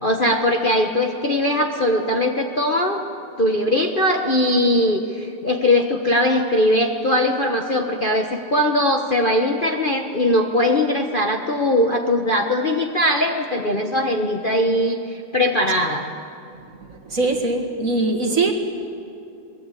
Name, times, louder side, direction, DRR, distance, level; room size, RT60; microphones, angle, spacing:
voice 1, 0.0-3.0 3.4-16.1, left 1 dB, 30° left, 2 dB, 1.1 m, -20 dB
voice 2, 16.9-18.5, right 3 dB, 45° right, 2 dB, 2.2 m, -22 dB
23.0 x 21.0 x 8.3 m, 2.5 s
omnidirectional pair, 2.1 m